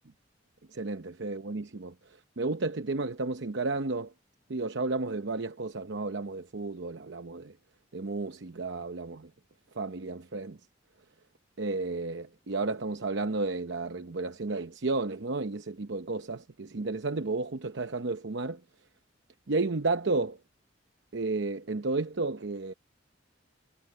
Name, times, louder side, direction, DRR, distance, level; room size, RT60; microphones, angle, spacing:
voice 1, 0.7-1.9 2.4-4.1 4.5-7.5 7.9-9.3 9.7-10.6 11.6-18.6 19.5-20.4 21.1-22.7, right 3 dB, 65° right, 0.8 m, -32 dB
head